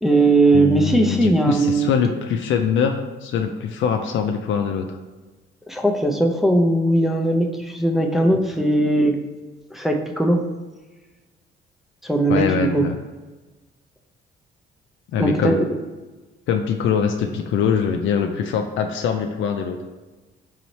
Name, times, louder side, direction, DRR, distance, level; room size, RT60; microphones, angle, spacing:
voice 1, 0.0-1.9 5.7-9.2 9.7-10.4 12.0-12.9 15.2-15.8, right 2 dB, ahead, 2 dB, 0.5 m, -19 dB
voice 2, 0.5-5.0 12.3-13.0 15.1-15.6 16.5-19.8, left 7 dB, 75° left, 4 dB, 0.4 m, -23 dB
4.1 x 3.9 x 3.1 m, 1.2 s
cardioid pair, 90°, 20 cm